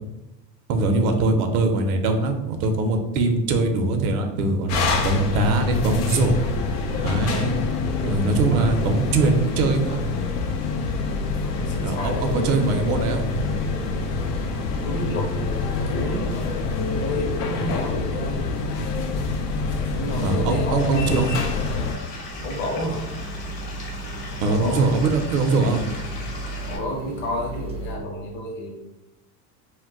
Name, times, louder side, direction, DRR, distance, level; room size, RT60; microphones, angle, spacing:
voice 1, 0.7-6.4 7.0-7.7 8.0-10.0 11.8-13.3 20.2-21.3 24.4-25.8, right 3 dB, 65° right, 5 dB, 0.6 m, -22 dB
sound 1, 4.7-21.9, left 3 dB, 85° left, 0.6 m, -26 dB
voice 2, 11.5-12.5 14.8-16.6 16.9-18.5 19.9-21.1 22.4-23.1 24.4-24.8 26.7-28.7, equal, 25° left, 0 dB, 0.7 m, -30 dB
Stream / Liquid, 20.8-26.8, left 3 dB, 40° left, 1.0 m, -37 dB
sound 2, 22.3-28.0, right 2 dB, 15° right, 0.4 m, -35 dB
2.2 x 2.1 x 3.6 m, 0.97 s
hypercardioid pair, 105°, 47 cm